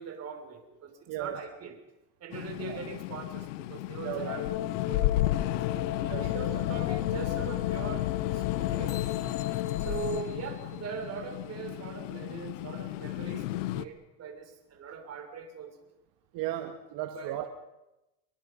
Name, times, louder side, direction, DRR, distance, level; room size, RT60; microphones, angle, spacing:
voice 1, 0.0-1.8 2.2-5.9 6.2-9.0 9.6-15.8 17.1-17.5, right 6 dB, 45° right, 5 dB, 6.1 m, -41 dB
sound 1, 2.3-13.8, left 15 dB, 90° left, 1.2 m, -33 dB
sound 2, 4.3-10.2, left 13 dB, 60° left, 2.8 m, -36 dB
voice 2, 6.0-6.4 16.3-17.5, right 12 dB, 65° right, 6 dB, 2.2 m, -35 dB
sound 3, 8.9-11.5, left 8 dB, 40° left, 7.2 m, -51 dB
29.0 x 23.0 x 5.6 m, 0.95 s
supercardioid pair, 110°, 36 cm